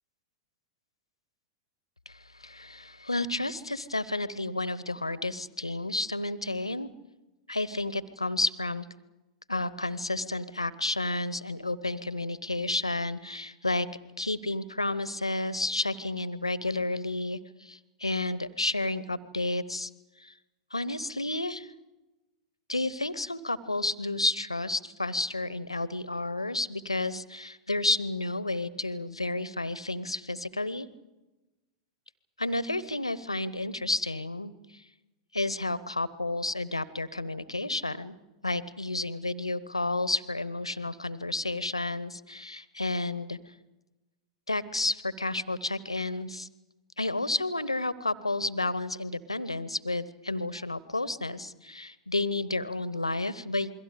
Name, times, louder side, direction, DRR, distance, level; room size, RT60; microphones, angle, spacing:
voice 1, 2.1-6.9 7.5-8.8 9.5-13.9 14.2-19.9 20.2-20.3 20.7-21.7 22.7-30.9 32.4-34.5 35.3-38.2 38.4-43.4 44.5-46.5 47.0-53.7, left 2 dB, 85° left, 18 dB, 0.9 m, -31 dB
28.5 x 22.5 x 5.1 m, 1.0 s
figure-of-eight pair, 95°, 3 cm